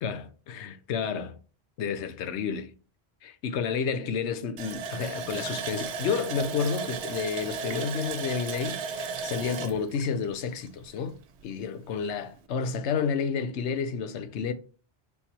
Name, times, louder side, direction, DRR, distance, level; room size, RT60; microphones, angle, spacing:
voice 1, 0.0-1.4 1.8-2.7 3.2-11.1 11.4-14.5, left 6 dB, 90° left, 0.9 m, -30 dB
Water tap faucet, 4.6-11.1 11.4-11.5 11.9-12.1, right 5 dB, 85° right, 0.9 m, -35 dB
3.9 x 2.9 x 4.0 m
omnidirectional pair, 1.1 m